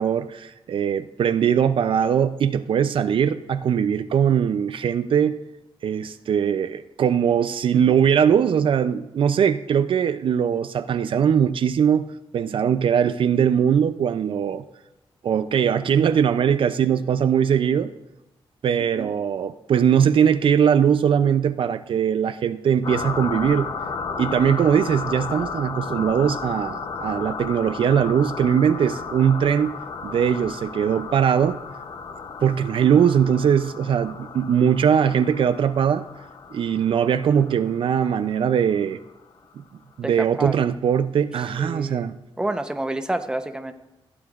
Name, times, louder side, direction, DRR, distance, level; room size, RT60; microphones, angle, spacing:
voice 1, 0.0-5.3 5.8-12.0 12.3-14.6 15.2-17.9 18.6-23.7 24.2-29.7 30.0-31.6 32.4-36.0 36.5-39.0 40.0-42.2, right 8 dB, 65° right, 11 dB, 0.4 m, -20 dB
sound 1, 22.8-39.1, left 5 dB, 50° left, 0.7 m, -34 dB
voice 2, 40.0-40.5 41.6-42.0 42.4-43.7, right 1 dB, 10° right, 7 dB, 0.7 m, -28 dB
15.5 x 9.7 x 2.4 m, 0.97 s
wide cardioid pair, 120°, 10 cm